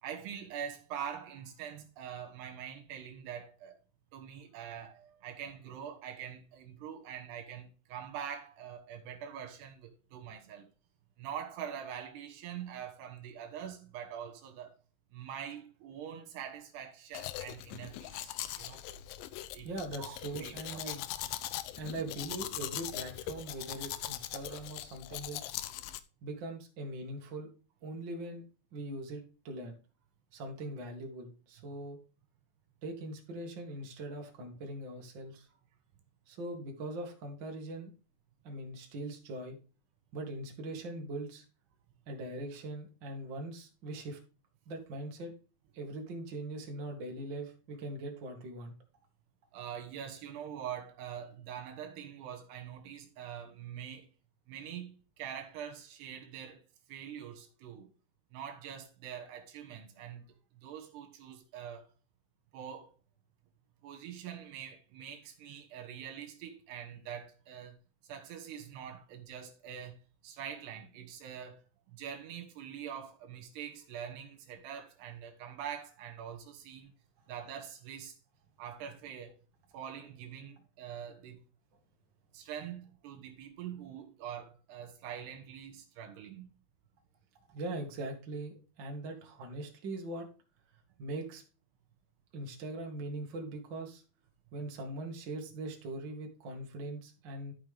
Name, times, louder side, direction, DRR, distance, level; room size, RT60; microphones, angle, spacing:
voice 1, 0.0-3.8 4.1-10.7 11.2-14.8 15.1-18.3 18.6-18.8 19.5-19.7 20.0-20.9 49.5-54.1 54.5-56.6 56.9-57.9 58.3-60.3 60.5-61.9 62.5-62.9 63.8-67.8 68.0-71.6 71.9-76.9 77.3-78.2 78.6-79.4 79.7-81.4 82.3-86.5, right 9 dB, 80° right, 3.5 m, -44 dB
Domestic sounds home sounds, 17.1-26.0, left 13 dB, 85° left, 1.9 m, -41 dB
voice 2, 19.6-21.1 21.8-25.5 26.2-27.5 27.8-28.4 28.7-29.8 30.3-32.0 32.8-35.5 36.3-37.9 38.4-39.6 40.1-41.4 42.1-44.2 44.7-45.3 45.7-48.7 87.5-90.3 91.0-91.4 92.3-94.0 94.5-97.5, right 2 dB, 40° right, 2.0 m, -41 dB
12.0 x 5.8 x 3.5 m
omnidirectional pair, 4.7 m